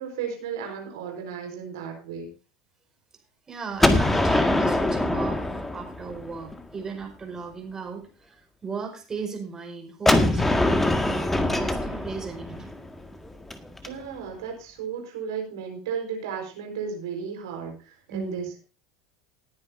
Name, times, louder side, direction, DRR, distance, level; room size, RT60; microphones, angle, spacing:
voice 1, 0.0-2.3 13.8-18.6, right 6 dB, 70° right, 3 dB, 4.3 m, -34 dB
voice 2, 3.5-12.7 18.1-18.5, right 5 dB, 25° right, 3 dB, 5.0 m, -36 dB
Gunshot gunfire, 3.8-6.6 10.1-13.9, left 1 dB, 10° left, 1.8 m, -23 dB
20.0 x 9.7 x 2.6 m, 0.33 s
hypercardioid pair, 80°, 2 cm